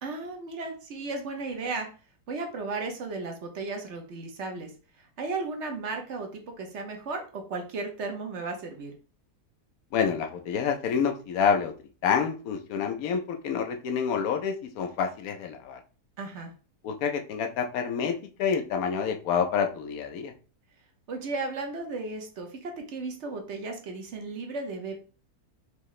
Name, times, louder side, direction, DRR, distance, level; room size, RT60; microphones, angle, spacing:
voice 1, 0.0-1.9 2.3-4.7 5.0-8.9 16.2-16.5 21.1-25.0, right 3 dB, 55° right, 4 dB, 1.0 m, -35 dB
voice 2, 9.9-11.7 12.0-15.8 16.8-20.3, left 6 dB, 70° left, 6 dB, 1.0 m, -28 dB
4.8 x 2.7 x 3.1 m, 0.36 s
omnidirectional pair, 1.8 m